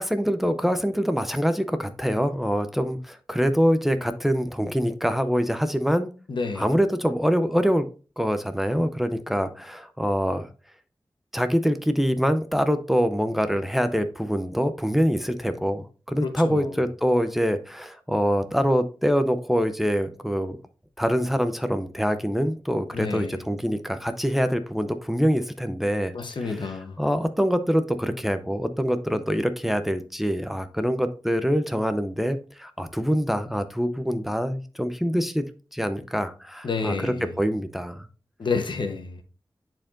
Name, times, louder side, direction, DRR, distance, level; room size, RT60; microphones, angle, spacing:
voice 1, 0.0-6.1 6.6-7.8 8.2-10.5 11.3-20.6 21.0-26.1 26.4-26.6 27.0-35.5 35.7-38.1, equal, 5° right, 0.6 m, -25 dB
voice 2, 6.3-6.7 16.2-16.8 22.9-23.4 26.1-27.0 36.6-37.3 38.4-39.2, left 4 dB, 80° left, 0.9 m, -29 dB
10.0 x 4.4 x 2.5 m
wide cardioid pair, 95°, 8 cm